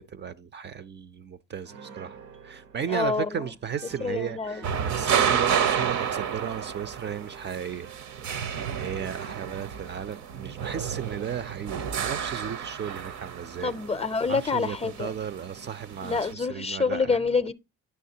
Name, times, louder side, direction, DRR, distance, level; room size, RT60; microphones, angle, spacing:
voice 1, 0.0-7.9 8.7-13.7 14.3-17.2, right 8 dB, 35° right, 0.4 m, -35 dB
Piano, 1.7-8.6, right 6 dB, 90° right, 0.9 m, -49 dB
voice 2, 2.9-3.5 4.0-4.7 13.6-15.1 16.0-17.5, left 4 dB, 20° left, 0.5 m, -27 dB
sound 1, 4.6-16.3, right 8 dB, 65° right, 0.7 m, -31 dB
9.3 x 6.2 x 2.7 m
cardioid pair, 90°, 30 cm